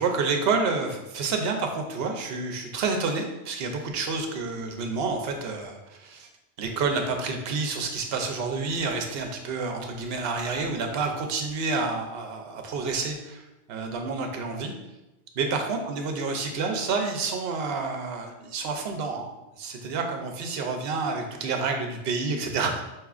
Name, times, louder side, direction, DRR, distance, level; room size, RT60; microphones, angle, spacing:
voice 1, 0.0-6.3 6.6-13.4 13.7-14.7 15.4-22.8, right 4 dB, 70° right, 3 dB, 0.8 m, -29 dB
5.8 x 3.0 x 2.4 m, 0.98 s
omnidirectional pair, 1.1 m